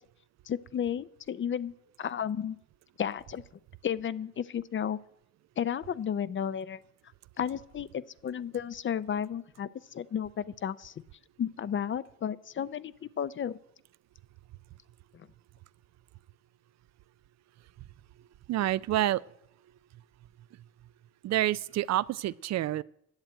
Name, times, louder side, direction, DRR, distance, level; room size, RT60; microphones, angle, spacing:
voice 1, 0.5-2.6 3.0-3.4 3.8-5.0 5.6-6.8 7.4-10.9 11.4-13.6, left 8 dB, 40° left, 0.5 m, -33 dB
voice 2, 18.5-19.2 21.2-22.8, right 14 dB, 60° right, 0.4 m, -28 dB
10.5 x 7.3 x 9.0 m
cardioid pair, 90°, 30 cm